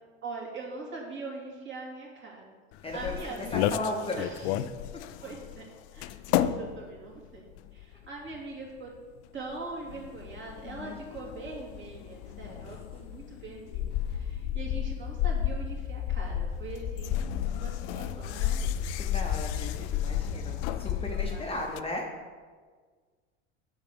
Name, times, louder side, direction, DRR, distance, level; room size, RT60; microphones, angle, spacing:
voice 1, 0.2-2.4 2.9-3.8 4.2-4.5 5.2-5.6 5.9-7.4 7.7-8.9 9.3-18.9 21.1-21.6, right 3 dB, 35° right, -2 dB, 2.5 m, -42 dB
sound 1, 2.7-21.8, left 11 dB, 75° left, 0.5 m, -37 dB
voice 2, 2.8-4.6 10.6-11.3 12.3-12.7 19.0-22.1, left 2 dB, 15° left, 0 dB, 0.9 m, -36 dB
sound 2, 13.7-21.2, left 9 dB, 50° left, 1.1 m, -31 dB
7.1 x 5.0 x 6.1 m, 1.5 s
supercardioid pair, 100°, 34 cm